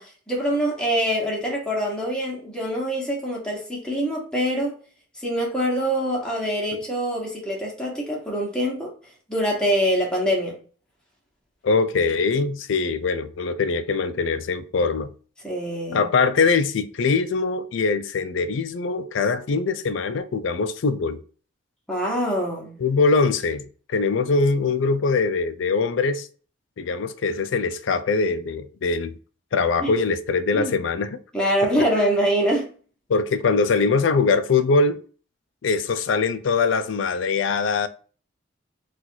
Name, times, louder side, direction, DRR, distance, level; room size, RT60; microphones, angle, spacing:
voice 1, 0.0-4.7 5.2-8.9 9.3-10.6 15.4-16.1 21.9-22.8 29.8-29.9 30.5-30.7 31.3-32.7, equal, 5° left, 1.0 m, -24 dB
voice 2, 11.6-15.1 15.9-21.2 22.8-26.3 26.8-29.2 29.5-31.2 33.1-35.0 35.6-37.9, left 4 dB, 90° left, 0.4 m, -22 dB
3.9 x 2.4 x 4.4 m
head